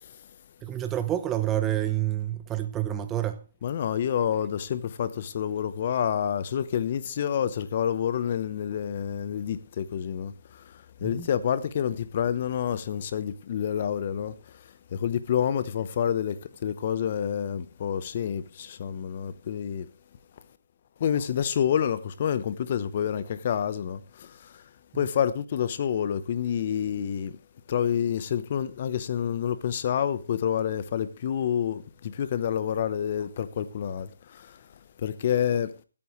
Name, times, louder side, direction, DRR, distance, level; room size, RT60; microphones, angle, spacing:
voice 1, 0.6-3.4 11.0-11.3, right 12 dB, 15° right, 0.8 m, -28 dB
voice 2, 3.6-10.3 11.0-14.3 14.9-19.9 21.0-24.3 24.9-27.3 27.7-34.1 35.0-35.7, left 9 dB, 40° left, 0.9 m, -28 dB
20.0 x 8.9 x 3.2 m
figure-of-eight pair, 150°, 0 cm